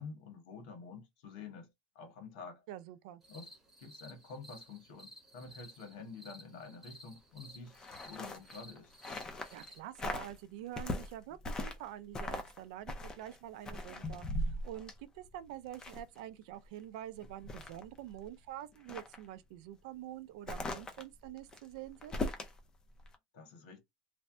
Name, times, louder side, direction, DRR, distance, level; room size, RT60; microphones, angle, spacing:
voice 1, 0.0-1.7 1.9-2.6 3.3-3.5 3.8-7.7 8.0-8.9 23.3-23.8, left 4 dB, 75° left, 1.4 m, -48 dB
voice 2, 2.7-3.2 9.3-22.2, right 12 dB, 70° right, 0.4 m, -46 dB
sound 1, 3.2-9.8, equal, 10° right, 0.9 m, -56 dB
sound 2, 7.7-9.7 10.0-10.4 10.8-11.9 12.1-12.6 12.9-16.2 16.6-16.7 17.1-18.3 18.7-19.2 20.5-22.6 23.0-23.2, left 1 dB, 15° left, 0.5 m, -40 dB
3.3 x 2.1 x 2.6 m
cardioid pair, 170°, 4 cm